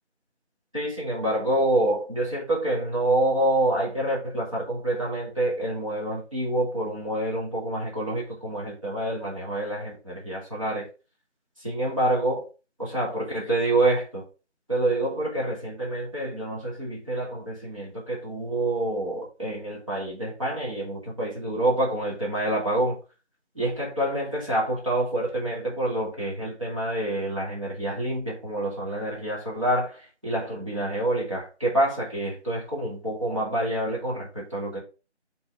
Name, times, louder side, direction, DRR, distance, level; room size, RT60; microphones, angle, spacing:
voice 1, 0.7-10.9 11.6-12.5 12.8-14.3 14.7-23.0 23.5-34.8, right 1 dB, 30° right, 2.2 m, -27 dB
7.5 x 3.9 x 3.4 m
figure-of-eight pair, 180°, 36 cm